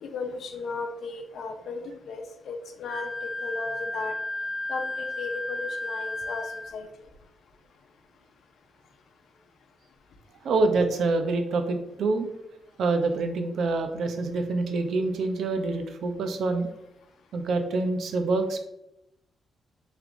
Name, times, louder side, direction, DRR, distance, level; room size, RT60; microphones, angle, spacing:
voice 1, 0.0-4.1 4.7-6.9, left 4 dB, 75° left, 5 dB, 0.7 m, -35 dB
Wind instrument woodwind instrument, 2.9-6.7, left 1 dB, ahead, 0.8 m, -33 dB
voice 2, 10.4-16.7 17.3-18.6, right 3 dB, 75° right, 6 dB, 0.6 m, -26 dB
5.9 x 3.3 x 2.6 m, 0.82 s
cardioid pair, 75°, 0 cm